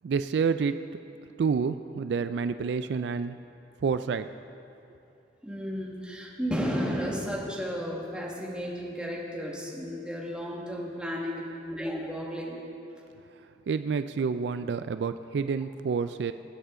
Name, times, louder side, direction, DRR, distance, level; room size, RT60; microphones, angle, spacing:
voice 1, 0.0-0.8 1.4-3.4 3.8-4.3 13.7-16.3, right 5 dB, 70° right, 11 dB, 0.3 m, -28 dB
voice 2, 5.4-12.6, equal, 5° right, -4 dB, 1.7 m, -33 dB
24.0 x 8.1 x 3.8 m, 2.8 s
head